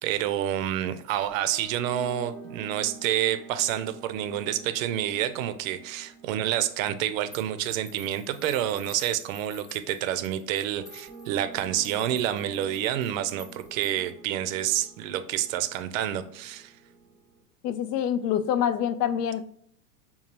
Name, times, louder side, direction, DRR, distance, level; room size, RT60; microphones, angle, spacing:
voice 1, 0.0-16.7, right 11 dB, 60° right, 11 dB, 0.5 m, -28 dB
sound 1, 1.3-9.4 10.7-17.4, right 4 dB, 20° right, 0.7 m, -48 dB
sound 2, 7.3-14.2, left 1 dB, 10° left, 0.4 m, -51 dB
voice 2, 17.6-19.4, left 9 dB, 80° left, 11 dB, 0.5 m, -26 dB
5.3 x 2.3 x 2.8 m, 0.67 s
hypercardioid pair, 120°, 47 cm